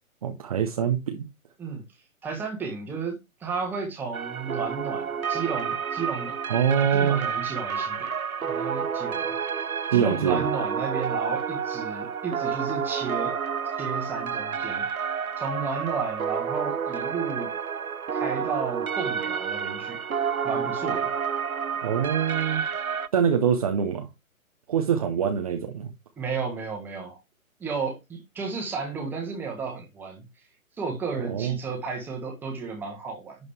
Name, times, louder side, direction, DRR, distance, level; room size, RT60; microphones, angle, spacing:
voice 1, 0.2-1.3 6.5-7.2 9.9-10.4 21.8-22.6 23.1-24.1 24.7-25.9 31.2-31.6, right 8 dB, 25° right, 0.9 m, -24 dB
voice 2, 2.2-6.3 6.7-9.4 9.9-13.4 13.7-14.8 15.4-17.5 18.1-20.0 20.4-21.1 26.2-27.2 27.6-30.2 30.8-33.4, right 5 dB, 5° right, 1.4 m, -33 dB
sound 1, 4.1-23.1, right 7 dB, 80° right, 0.7 m, -30 dB
11.0 x 4.0 x 3.3 m
figure-of-eight pair, 140°, 42 cm